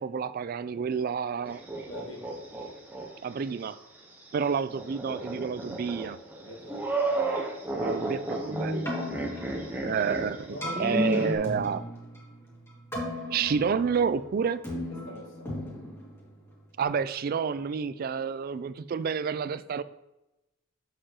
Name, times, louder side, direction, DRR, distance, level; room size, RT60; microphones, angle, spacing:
voice 1, 0.0-1.6 3.2-3.8 4.3-6.2 7.7-8.9 9.8-10.4 10.8-11.8 13.3-14.6 16.8-19.8, right 6 dB, 45° right, 15 dB, 0.3 m, -29 dB
sound 1, 1.4-3.1 3.5-3.6 4.6-11.4, right 1 dB, 10° right, 0.9 m, -32 dB
voice 2, 1.8-2.3 6.4-7.3 10.4-11.5 14.9-15.5, equal, 70° left, -1 dB, 1.6 m, -45 dB
Keyboard (musical), 8.7-16.8, left 1 dB, 15° left, 2.2 m, -38 dB
7.5 x 6.6 x 2.9 m, 0.95 s
head